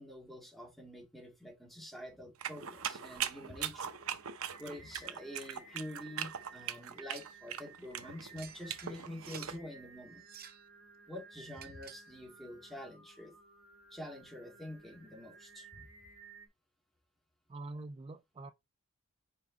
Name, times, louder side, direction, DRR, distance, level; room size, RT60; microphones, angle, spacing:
voice 1, 0.0-3.9 4.6-10.2 11.1-13.3 13.9-15.8, left 1 dB, ahead, 2.0 m, -47 dB
sound 1, 2.4-9.6, right 9 dB, 80° right, 0.7 m, -40 dB
Singing, 3.1-16.5, right 5 dB, 60° right, 2.0 m, -56 dB
sound 2, 7.1-7.4 8.4-9.6 10.2-10.7 11.5-12.1, right 9 dB, 45° right, 0.8 m, -52 dB
voice 2, 17.5-18.5, right 2 dB, 25° right, 0.3 m, -45 dB
5.0 x 4.9 x 3.8 m
head